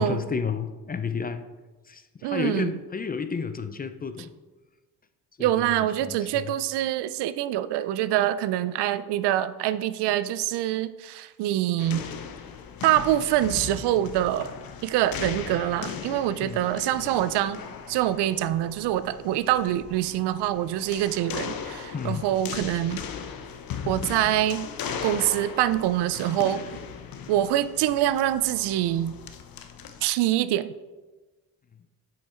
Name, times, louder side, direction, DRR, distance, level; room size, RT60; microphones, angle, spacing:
voice 1, 0.0-1.5 1.9-4.3 5.4-6.5 16.4-16.7 21.9-22.2, left 6 dB, 25° left, 10 dB, 0.5 m, -31 dB
voice 2, 2.2-2.7 5.4-12.0 12.8-14.5 14.8-17.6 17.9-23.0 23.9-24.7 25.0-26.6 27.3-29.1 30.0-30.7, right 13 dB, 80° right, 15 dB, 0.5 m, -25 dB
sound 1, 11.8-30.0, left 7 dB, 60° left, 0.9 m, -38 dB
7.5 x 5.6 x 4.4 m, 1.2 s
cardioid pair, 90°, 40 cm